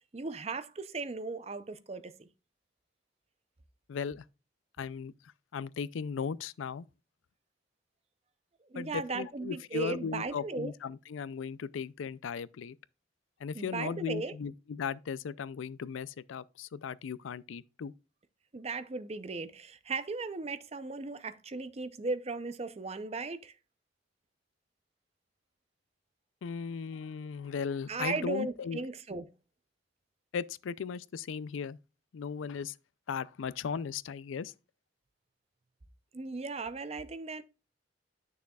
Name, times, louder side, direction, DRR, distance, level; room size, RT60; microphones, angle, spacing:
voice 1, 0.0-2.3 8.7-10.7 13.5-14.4 18.5-23.5 27.9-29.3 36.1-37.4, right 3 dB, 30° right, 0.5 m, -37 dB
voice 2, 3.9-4.2 4.8-5.1 5.5-6.9 8.7-12.8 13.4-17.9 26.4-28.8 30.3-31.8 32.1-32.7 33.1-34.5, left 6 dB, 85° left, 0.4 m, -37 dB
9.3 x 6.5 x 2.3 m
head